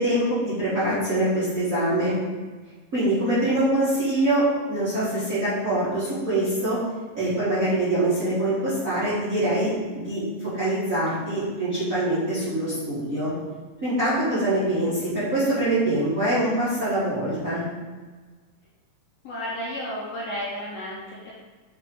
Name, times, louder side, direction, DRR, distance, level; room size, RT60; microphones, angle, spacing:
voice 1, 0.0-2.1 2.9-6.8 7.1-13.3 13.8-17.6, right 1 dB, 35° right, -12 dB, 1.5 m, -24 dB
voice 2, 19.2-21.3, equal, 65° left, -6 dB, 1.7 m, -32 dB
7.9 x 3.6 x 3.9 m, 1.4 s
omnidirectional pair, 3.8 m